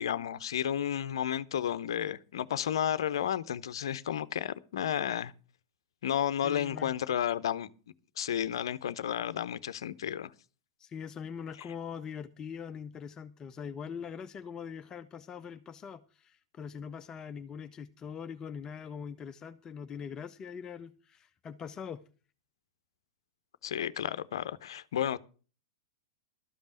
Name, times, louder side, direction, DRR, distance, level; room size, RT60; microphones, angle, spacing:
voice 1, 0.0-5.3 6.0-7.7 8.2-10.3 23.6-25.2, left 10 dB, 70° left, 0.6 m, -32 dB
voice 2, 6.4-6.9 10.8-22.0, left 7 dB, 25° left, 0.6 m, -42 dB
12.5 x 5.3 x 8.7 m
hypercardioid pair, 105°, 3 cm